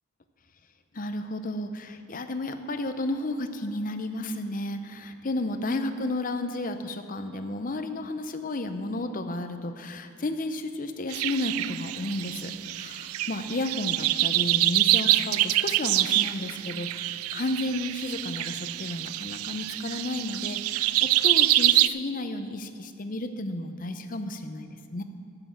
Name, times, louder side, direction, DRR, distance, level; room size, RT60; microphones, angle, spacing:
voice 1, 0.9-25.0, left 2 dB, 40° left, 8 dB, 0.6 m, -32 dB
sound 1, 11.1-21.9, right 15 dB, 80° right, 0.3 m, -26 dB
8.9 x 7.9 x 8.5 m, 2.6 s
head